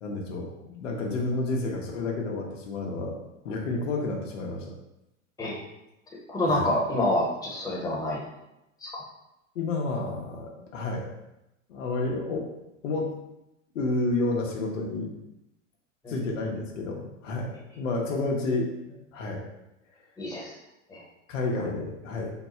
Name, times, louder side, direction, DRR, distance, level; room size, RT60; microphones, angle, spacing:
voice 1, 0.0-3.2 3.4-4.7 6.4-6.7 9.5-11.1 11.7-12.5 12.8-13.1 13.7-15.1 16.1-19.4 21.3-22.3, left 2 dB, 75° left, 0 dB, 1.0 m, -30 dB
voice 2, 6.3-8.2 8.8-9.0 16.0-16.1 20.2-20.5 20.9-21.0, left 1 dB, 10° left, -4 dB, 1.1 m, -27 dB
4.1 x 2.2 x 4.3 m, 0.88 s
hypercardioid pair, 105°, 38 cm